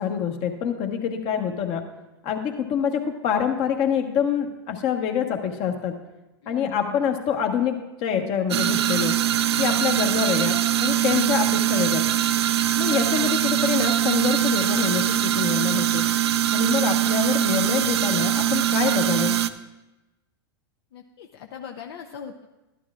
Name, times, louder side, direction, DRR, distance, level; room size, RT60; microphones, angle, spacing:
voice 1, 0.0-1.8 2.2-5.9 6.5-9.1 9.6-12.1 12.8-16.0 16.5-19.4, left 8 dB, 45° left, 3 dB, 1.2 m, -26 dB
voice 2, 6.4-7.0 20.9-22.5, left 8 dB, 70° left, 4 dB, 0.6 m, -39 dB
sound 1, 8.5-19.5, right 12 dB, 80° right, 0.4 m, -22 dB
12.5 x 11.5 x 2.4 m, 1.0 s
hypercardioid pair, 110°, 13 cm